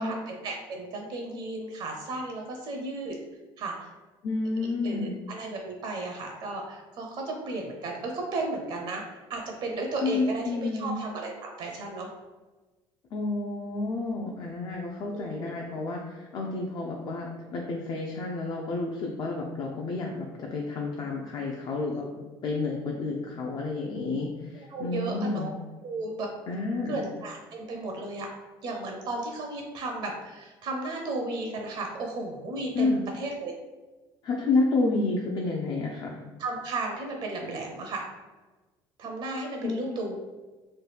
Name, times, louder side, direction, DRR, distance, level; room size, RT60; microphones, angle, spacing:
voice 1, 0.0-3.2 3.6-3.9 4.8-12.1 15.1-15.6 21.9-22.1 24.5-25.5 25.8-26.3 26.9-28.3 28.6-33.5 36.4-38.0 39.0-40.2, right 2 dB, 55° right, 1 dB, 0.6 m, -34 dB
voice 2, 4.2-5.1 10.0-10.9 13.1-22.1 22.4-25.5 26.5-27.0 32.7-33.0 34.2-36.2 39.6-39.9, left 3 dB, 45° left, -1 dB, 0.4 m, -30 dB
3.1 x 2.2 x 3.3 m, 1.2 s
cardioid pair, 110°, 10 cm